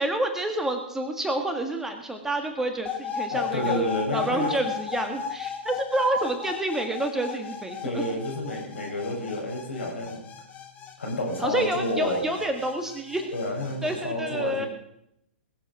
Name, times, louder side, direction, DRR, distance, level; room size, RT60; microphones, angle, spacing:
voice 1, 0.0-8.1 11.4-13.3 13.8-14.7, right 1 dB, 5° right, 5 dB, 1.7 m, -28 dB
sound 1, 2.9-14.0, left 7 dB, 25° left, 2.9 m, -36 dB
voice 2, 3.3-4.5 7.8-10.2 11.0-12.3 13.3-14.7, left 1 dB, 75° left, -1 dB, 6.8 m, -29 dB
20.5 x 8.0 x 6.1 m, 0.79 s
figure-of-eight pair, 115°, 6 cm